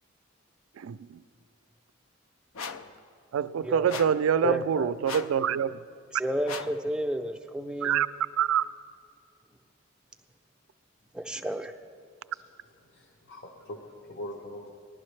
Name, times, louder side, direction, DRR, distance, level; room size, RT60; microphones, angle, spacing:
voice 1, 0.8-1.2 3.3-5.8 7.8-8.1 8.4-8.6, right 8 dB, 85° right, 15 dB, 0.3 m, -26 dB
sound 1, 2.5-2.9 3.9-4.3 5.0-5.4 6.4-6.8, left 5 dB, 85° left, 0.5 m, -38 dB
voice 2, 4.4-4.9 6.2-8.0 11.1-11.7, equal, 5° right, 5 dB, 0.4 m, -31 dB
voice 3, 12.8-14.7, left 1 dB, 60° left, 1 dB, 0.8 m, -42 dB
19.5 x 12.0 x 3.2 m, 2.2 s
head